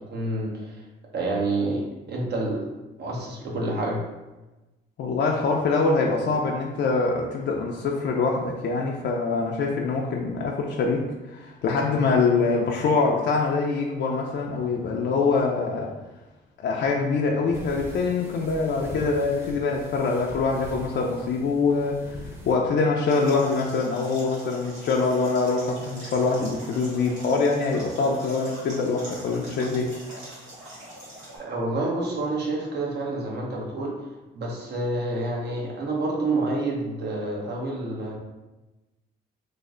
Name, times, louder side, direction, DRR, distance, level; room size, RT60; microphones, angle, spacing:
voice 1, 0.1-0.8 1.1-1.8 2.1-2.6 3.0-4.0 11.8-12.0 31.3-33.9 34.3-38.1, right 2 dB, 55° right, -2 dB, 0.9 m, -28 dB
voice 2, 5.0-15.9 16.6-29.9, left 4 dB, 60° left, -1 dB, 0.4 m, -24 dB
sound 1, 17.5-22.6, equal, 10° right, 0.8 m, -41 dB
sound 2, 23.1-31.4, right 1 dB, 85° right, 1.4 m, -42 dB
3.1 x 2.0 x 3.7 m, 1.1 s
cardioid pair, 90°, 20 cm